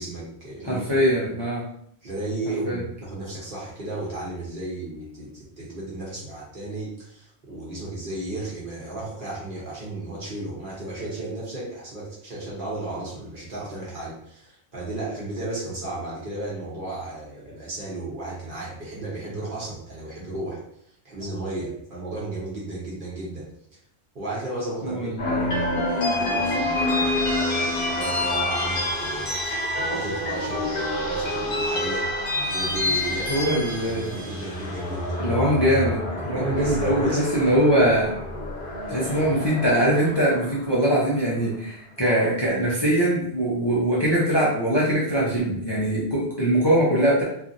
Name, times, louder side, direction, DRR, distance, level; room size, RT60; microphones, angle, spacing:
voice 1, 0.0-1.0 2.0-20.6 21.0-23.5 24.1-32.1 32.5-35.2 36.1-37.3 39.0-39.3, right 2 dB, 50° right, -6 dB, 1.1 m, -34 dB
voice 2, 0.6-1.7 2.6-2.8 24.8-25.6 33.3-34.2 35.2-38.2 38.9-47.2, right 1 dB, 30° left, -6 dB, 0.5 m, -22 dB
sound 1, 25.2-41.4, left 2 dB, 55° left, 0.9 m, -27 dB
2.9 x 2.5 x 2.5 m, 0.70 s
omnidirectional pair, 1.2 m